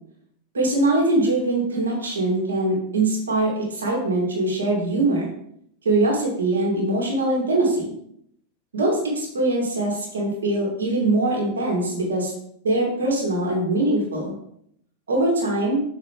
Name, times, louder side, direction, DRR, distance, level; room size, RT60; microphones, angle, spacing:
voice 1, 0.5-5.3 5.8-7.9 8.7-12.3 12.6-14.3 15.1-15.8, right 2 dB, 70° right, -2 dB, 2.5 m, -22 dB
6.9 x 5.3 x 3.3 m, 0.70 s
figure-of-eight pair, 90°, 0 cm